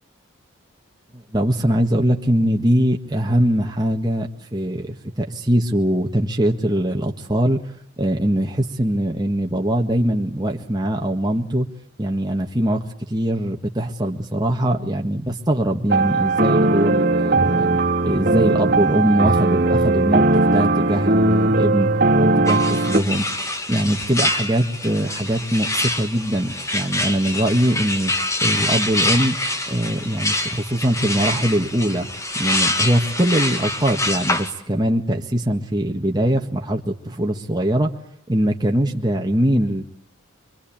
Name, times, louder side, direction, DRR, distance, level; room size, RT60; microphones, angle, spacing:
voice 1, 1.1-7.6 8.0-11.7 12.0-12.8 13.1-17.8 18.0-21.9 22.2-23.3 23.7-28.1 28.4-29.4 29.7-32.1 32.3-37.9 38.3-39.8, right 1 dB, 20° right, 1 dB, 1.7 m, -22 dB
sound 1, 15.9-23.0, right 2 dB, 45° right, 2.0 m, -18 dB
sound 2, 22.5-34.5, left 1 dB, 15° left, 1.8 m, -25 dB
25.0 x 24.5 x 8.8 m, 0.70 s
head